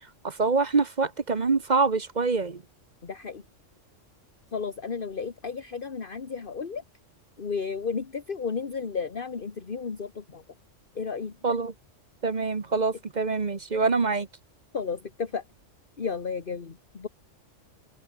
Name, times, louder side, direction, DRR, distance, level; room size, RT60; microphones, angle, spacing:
voice 1, 0.2-2.6 11.4-11.7 12.2-14.3, right 4 dB, 35° right, 1.2 m, -25 dB
voice 2, 3.0-3.4 4.5-6.8 7.4-10.4 10.9-11.3 14.7-15.4 16.0-17.1, left 5 dB, 45° left, 1.6 m, -33 dB
open air
omnidirectional pair, 1.3 m